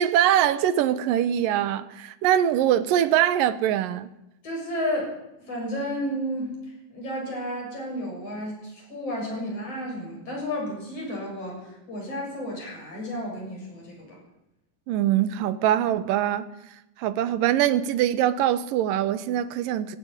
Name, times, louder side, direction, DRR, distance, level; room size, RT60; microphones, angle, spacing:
voice 1, 0.0-4.1 14.9-16.5 17.0-20.0, right 11 dB, 75° right, 2.4 m, -23 dB
voice 2, 4.4-14.2, equal, 40° left, 8.3 m, -32 dB
16.5 x 16.5 x 9.9 m
omnidirectional pair, 4.5 m